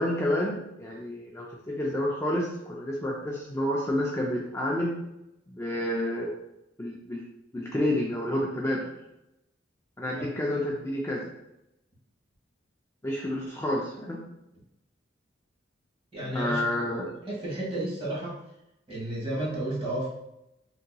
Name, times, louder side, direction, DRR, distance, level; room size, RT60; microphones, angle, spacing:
voice 1, 0.0-4.9 5.5-6.3 6.8-7.2 7.5-8.8 10.0-11.2 13.0-14.2 16.2-17.1, left 1 dB, 15° left, -3 dB, 0.4 m, -29 dB
voice 2, 16.1-16.6 17.2-18.4 18.9-20.1, right 1 dB, 30° right, -6 dB, 1.4 m, -32 dB
3.8 x 2.8 x 2.2 m, 0.85 s
head